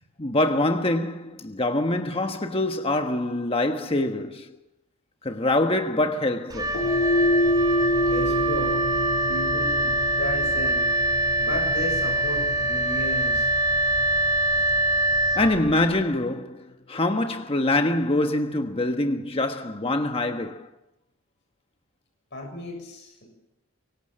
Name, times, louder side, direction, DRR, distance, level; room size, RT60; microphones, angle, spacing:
voice 1, 0.2-4.6 5.2-6.8 15.3-20.7, left 2 dB, 25° left, 1.3 m, -25 dB
Wind instrument woodwind instrument, 6.5-16.0, right 1 dB, 20° right, 5.0 m, -24 dB
sound 1, 6.7-15.2, left 1 dB, 75° left, 5.3 m, -28 dB
voice 2, 8.1-8.7 9.3-10.8 11.4-13.5 22.3-23.3, left 1 dB, 55° left, 7.4 m, -34 dB
24.5 x 24.0 x 7.6 m
head